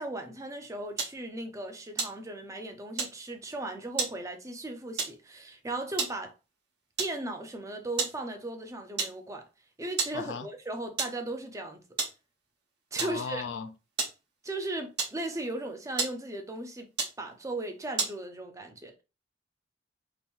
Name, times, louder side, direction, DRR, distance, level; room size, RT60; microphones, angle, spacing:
voice 1, 0.0-6.3 7.0-9.5 9.8-11.9 12.9-13.5 14.4-16.9 17.2-18.9, right 2 dB, 15° right, 0.5 m, -37 dB
sound 1, 1.0-1.3 1.9-2.6 3.0-3.2 4.0-4.2 5.0-5.3 5.8-6.3 7.0-7.2 8.0-8.3 8.5-8.6 9.0-9.3 10.0-10.3 11.0-11.3 12.0-12.2 13.0-13.2 14.0-14.2 15.0-15.5 16.0-16.3 17.0-17.2 18.0-18.2, right 5 dB, 60° right, 1.0 m, -32 dB
voice 2, 10.1-10.5 13.0-13.7, left 6 dB, 70° left, 0.4 m, -36 dB
2.9 x 2.6 x 3.5 m
head